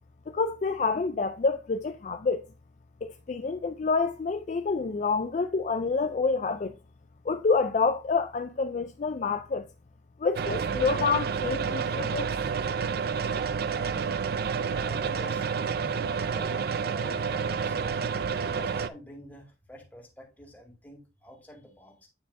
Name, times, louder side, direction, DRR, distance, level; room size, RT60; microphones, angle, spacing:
voice 1, 0.3-2.5 3.0-6.7 7.3-9.7 10.2-12.3, left 4 dB, 40° left, 0.3 m, -28 dB
sound 1, 10.4-18.9, right 6 dB, 55° right, 0.4 m, -29 dB
voice 2, 14.5-22.1, equal, 10° left, 2.1 m, -49 dB
9.3 x 4.6 x 2.6 m
head